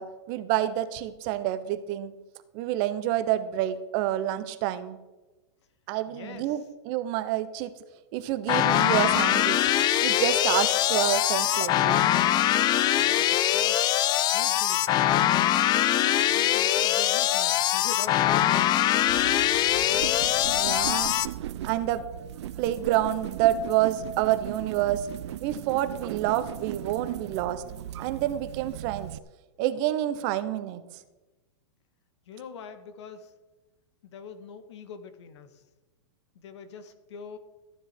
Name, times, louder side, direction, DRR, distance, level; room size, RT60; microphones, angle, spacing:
voice 1, 0.0-2.1 2.5-5.0 5.9-7.7 8.1-9.6 10.0-12.0 20.5-21.2 21.6-22.0 22.6-25.1 25.4-27.6 28.0-29.1 29.6-30.8, right 13 dB, 45° right, 12 dB, 1.1 m, -28 dB
voice 2, 6.1-6.7 13.0-13.9 14.3-15.3 15.9-18.6 19.2-20.2 32.3-33.3 34.0-35.6 36.4-37.4, left 6 dB, 70° left, 9 dB, 1.9 m, -44 dB
sound 1, 8.5-21.3, left 12 dB, 30° left, 0.5 m, -23 dB
Bowed string instrument, 8.6-15.7, left 2 dB, 50° left, 3.2 m, -52 dB
sound 2, 19.0-29.2, right 12 dB, 70° right, 0.6 m, -38 dB
15.0 x 9.9 x 4.6 m, 1.1 s
hypercardioid pair, 130°, 15 cm